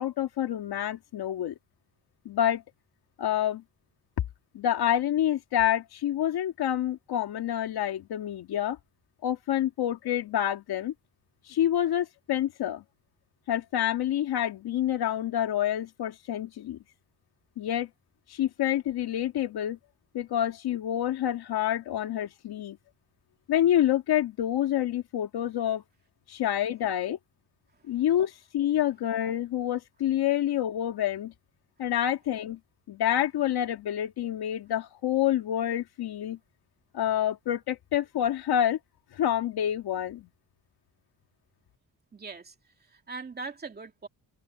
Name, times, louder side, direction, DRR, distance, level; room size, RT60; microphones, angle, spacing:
voice 1, 0.0-1.5 2.3-2.6 3.2-3.6 4.5-8.8 9.2-10.9 11.5-12.8 13.5-16.8 17.6-17.9 18.3-19.8 20.1-22.8 23.5-25.8 26.3-27.2 27.9-31.3 31.8-32.6 32.9-36.4 36.9-38.8 39.1-40.3, left 11 dB, 80° left, 2.2 m, -27 dB
voice 2, 42.1-42.5 42.9-44.1, right 4 dB, 25° right, 2.7 m, -40 dB
wide cardioid pair, 175°, 38 cm